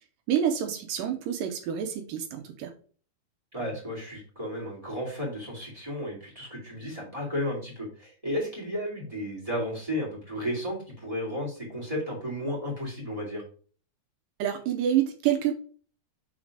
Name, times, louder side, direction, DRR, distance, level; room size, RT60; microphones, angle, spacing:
voice 1, 0.3-2.7 14.4-15.5, right 10 dB, 75° right, 6 dB, 2.2 m, -27 dB
voice 2, 3.5-13.4, equal, 10° right, -3 dB, 2.0 m, -33 dB
6.3 x 3.8 x 4.8 m, 0.41 s
omnidirectional pair, 4.3 m